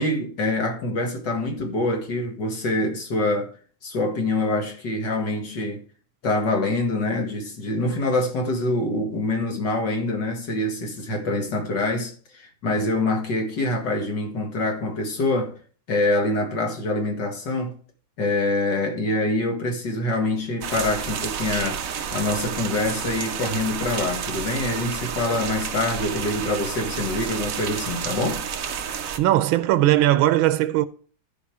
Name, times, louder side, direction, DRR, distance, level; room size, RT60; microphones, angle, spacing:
voice 1, 0.0-3.5 3.8-5.8 6.2-15.5 15.9-17.7 18.2-21.8 22.1-28.4, left 2 dB, 60° left, 2.5 m, -25 dB
sound 1, 20.6-29.2, right 7 dB, 55° right, 1.0 m, -30 dB
voice 2, 29.2-30.9, right 14 dB, 90° right, 1.5 m, -19 dB
13.5 x 5.0 x 4.8 m
omnidirectional pair, 2.2 m